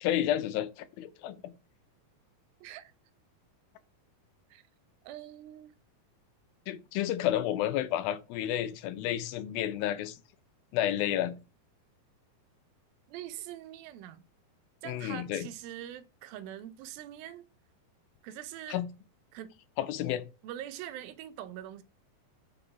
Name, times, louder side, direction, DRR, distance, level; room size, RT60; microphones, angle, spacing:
voice 1, 0.0-1.5 6.7-10.2 10.7-11.3 14.8-15.5 18.7-18.9 19.8-20.2, left 12 dB, 85° left, 2.5 m, -31 dB
voice 2, 2.6-2.9 4.5-4.6 5.0-5.8 13.1-14.2 14.8-17.4 18.2-18.9 19.3-19.6 20.4-21.8, right 12 dB, 85° right, 2.4 m, -43 dB
6.2 x 3.8 x 5.7 m
omnidirectional pair, 4.2 m